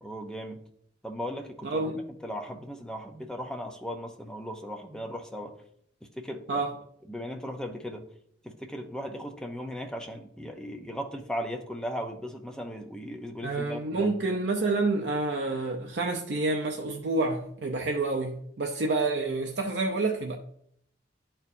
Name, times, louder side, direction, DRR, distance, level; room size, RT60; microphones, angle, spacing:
voice 1, 0.0-0.6 1.0-5.5 6.2-6.7 7.1-8.1 8.4-14.1, equal, 5° left, 0.6 m, -37 dB
voice 2, 1.6-2.0 6.5-6.7 13.4-20.4, right 3 dB, 60° right, 0.6 m, -28 dB
10.5 x 4.4 x 2.7 m
head